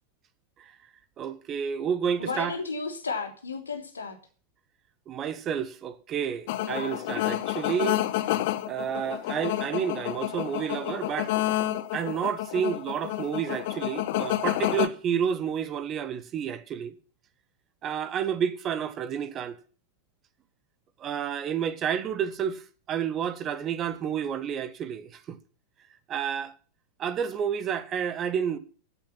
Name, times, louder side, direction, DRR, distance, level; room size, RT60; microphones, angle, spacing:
voice 1, 1.2-2.5 5.1-8.0 8.7-11.3 11.9-16.9 17.8-19.5 21.0-22.6 22.9-25.4 26.1-26.5 27.0-28.6, right 8 dB, 30° right, 1.5 m, -30 dB
voice 2, 2.2-4.2 6.5-7.0, left 4 dB, 75° left, 3.2 m, -34 dB
sound 1, 6.5-14.9, left 15 dB, 50° left, 1.1 m, -29 dB
16.0 x 9.0 x 6.0 m
figure-of-eight pair, 90°, 0 cm